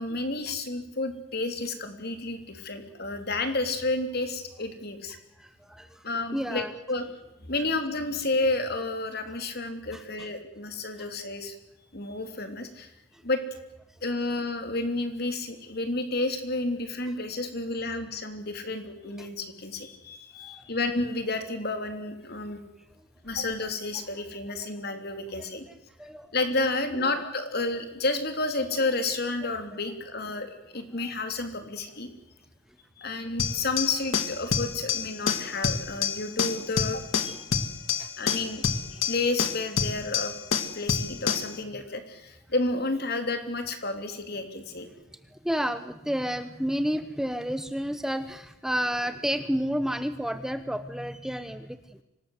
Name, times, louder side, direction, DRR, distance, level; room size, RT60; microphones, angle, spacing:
voice 1, 0.0-5.2 6.0-7.0 7.4-11.5 11.9-12.9 13.2-13.4 14.0-22.6 23.2-25.6 26.3-32.1 33.0-37.0 38.2-38.6 39.1-40.3 40.7-44.9, left 2 dB, 50° left, 7 dB, 3.3 m, -31 dB
voice 2, 5.4-6.0 6.3-6.7 9.9-10.3 11.0-11.1 13.1-13.2 19.2-19.3 20.4-20.6 24.6-24.7 26.0-26.3 27.0-27.1 29.4-29.5 33.0-33.1 37.2-37.4 38.0-38.4 38.9-39.1 45.4-52.0, equal, ahead, 11 dB, 0.8 m, -31 dB
sound 1, 33.4-41.6, left 6 dB, 75° left, 2.0 m, -28 dB
25.5 x 19.0 x 8.0 m, 0.96 s
head